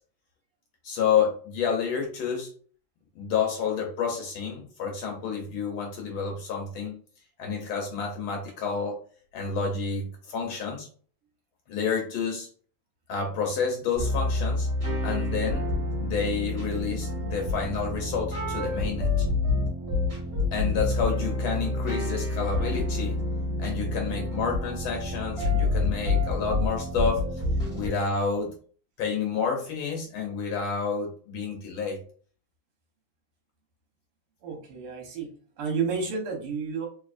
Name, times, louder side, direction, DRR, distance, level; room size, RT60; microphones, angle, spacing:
voice 1, 0.8-2.5 3.1-7.0 7.4-9.0 9.3-10.9 11.7-12.5 13.1-14.7 15.0-15.7 16.0-19.3 20.5-23.2 23.6-27.3 27.7-28.5 29.0-32.0, left 6 dB, 75° left, 1 dB, 1.5 m, -29 dB
sound 1, 13.9-27.9, left 2 dB, 30° right, 1.5 m, -28 dB
voice 2, 34.4-35.3 35.6-36.9, right 5 dB, 80° right, 1 dB, 2.0 m, -31 dB
4.1 x 2.7 x 2.5 m, 0.44 s
omnidirectional pair, 2.4 m